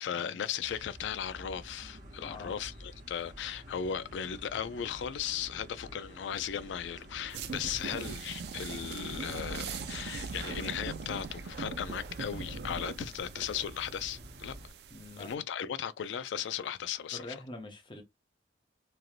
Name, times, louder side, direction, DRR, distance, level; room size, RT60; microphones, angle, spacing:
voice 1, 0.0-14.6 15.2-17.3, left 8 dB, 90° left, 0.3 m, -37 dB
sound 1, 0.6-14.7, equal, 45° right, 0.8 m, -50 dB
voice 2, 2.2-2.5 7.8-8.0 14.9-15.3 17.1-18.0, left 2 dB, 30° left, 0.7 m, -45 dB
sound 2, 7.3-15.3, right 4 dB, 65° right, 0.4 m, -41 dB
3.1 x 2.5 x 2.4 m
head